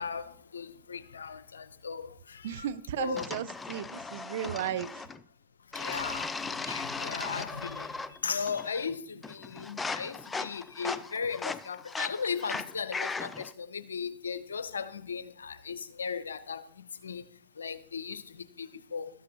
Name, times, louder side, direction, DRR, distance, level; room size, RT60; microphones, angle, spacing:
voice 1, 0.0-2.7 3.0-3.3 5.7-6.3 6.7-7.9 8.2-16.6 17.0-17.2 17.6-18.2 18.6-19.1, left 6 dB, 85° left, 0.6 m, -36 dB
voice 2, 2.4-5.1, right 10 dB, 65° right, 0.5 m, -35 dB
sound 1, 3.2-5.2 5.7-8.2 8.5-8.9 9.2-13.5, left 4 dB, 15° left, 0.4 m, -37 dB
12.5 x 7.5 x 2.9 m
hypercardioid pair, 100°, 0 cm